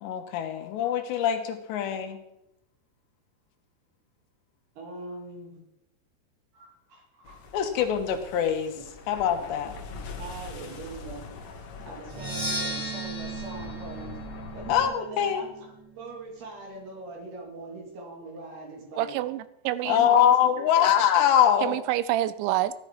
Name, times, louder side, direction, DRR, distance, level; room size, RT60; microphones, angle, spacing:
voice 1, 0.0-2.2 7.5-8.7 9.1-9.7 14.7-15.4 19.8-21.8, left 9 dB, 80° left, 3.3 m, -23 dB
voice 2, 4.8-5.6 6.5-7.5 10.2-11.3 11.8-14.2 14.5-19.2 19.8-20.9, right 2 dB, 65° right, 5.0 m, -42 dB
sound 1, 7.2-14.9, left 4 dB, 60° left, 1.9 m, -43 dB
Percussion, 12.1-15.9, right 2 dB, 20° right, 0.6 m, -35 dB
voice 3, 19.0-20.1 21.6-22.7, right 14 dB, 90° right, 3.0 m, -27 dB
15.0 x 11.5 x 4.9 m
omnidirectional pair, 5.2 m